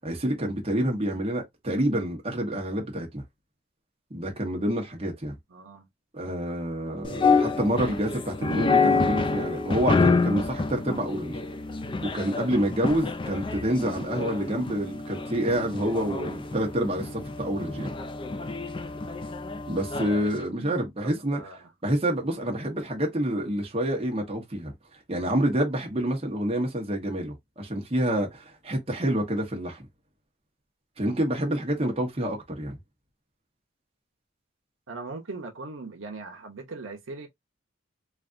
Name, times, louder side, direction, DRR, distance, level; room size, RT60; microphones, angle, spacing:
voice 1, 0.0-3.2 4.1-5.4 6.1-11.4 12.0-17.9 19.7-21.4 21.8-24.7 25.1-29.8 31.0-32.8, right 1 dB, 30° right, 1.0 m, -28 dB
voice 2, 5.5-5.9 7.7-7.9 20.5-21.7 34.9-37.3, right 3 dB, 85° right, 0.8 m, -40 dB
sound 1, 7.0-20.3, left 4 dB, 25° left, 0.4 m, -28 dB
3.3 x 2.5 x 2.5 m
head